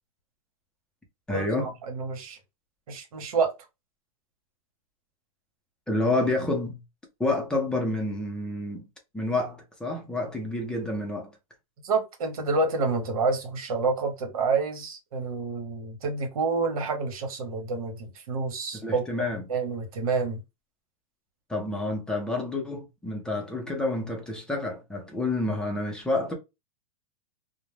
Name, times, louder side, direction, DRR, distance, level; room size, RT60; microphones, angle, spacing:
voice 1, 1.3-1.7 5.9-6.8 7.2-8.9 9.1-11.3 18.7-19.4 21.5-26.3, left 2 dB, 5° left, 0.5 m, -29 dB
voice 2, 1.9-2.4 2.9-3.5 11.8-19.0 19.5-20.4, right 4 dB, 80° right, 1.1 m, -28 dB
2.4 x 2.1 x 3.1 m
supercardioid pair, 150°, 18 cm